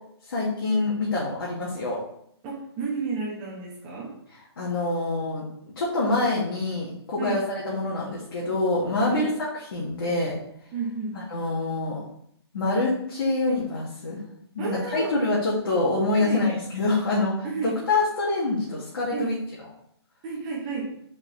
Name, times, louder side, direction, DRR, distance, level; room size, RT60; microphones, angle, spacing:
voice 1, 0.3-2.0 4.6-5.4 5.8-9.3 9.7-10.3 11.3-12.0 12.5-14.2 14.5-17.5 17.9-19.4, left 2 dB, 55° left, -6 dB, 2.0 m, -25 dB
voice 2, 2.4-4.2 7.2-7.4 9.1-9.3 10.7-11.2 14.6-15.1 16.2-16.5 17.4-17.8 19.1-19.4 20.2-20.9, right 5 dB, 20° right, -4 dB, 1.3 m, -31 dB
6.4 x 4.7 x 3.4 m, 0.72 s
hypercardioid pair, 160°, 14 cm